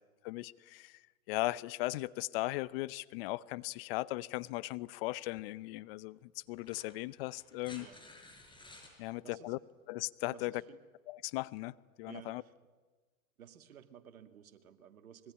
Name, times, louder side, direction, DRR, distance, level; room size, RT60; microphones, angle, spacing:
voice 1, 0.2-1.0 1.3-7.9 9.0-9.6 9.9-10.6 11.1-12.4, left 19 dB, 45° left, 0.8 m, -38 dB
sound 1, 6.5-9.0 10.5-10.6, left 2 dB, 10° left, 6.2 m, -55 dB
voice 2, 9.0-9.5 10.3-10.8 12.1-12.5 13.4-15.3, right 9 dB, 80° right, 2.4 m, -54 dB
25.0 x 22.0 x 9.9 m
hypercardioid pair, 120°, 42 cm